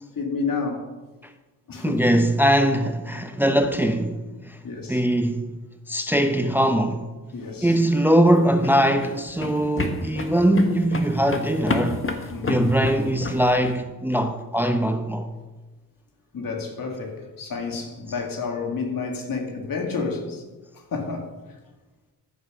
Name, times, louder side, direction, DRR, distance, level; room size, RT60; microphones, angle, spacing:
voice 1, 0.2-0.9 1.7-2.1 4.6-5.0 7.3-7.8 12.3-12.8 16.3-20.4 20.7-21.3, left 4 dB, 55° left, 2.4 m, -30 dB
voice 2, 1.8-4.6 4.9-5.6 5.9-7.1 7.6-12.1 12.5-15.3, right 1 dB, 5° right, 0.8 m, -21 dB
sound 1, 8.1-13.8, left 2 dB, 30° left, 1.6 m, -30 dB
14.0 x 5.3 x 6.3 m
cardioid pair, 60°, 39 cm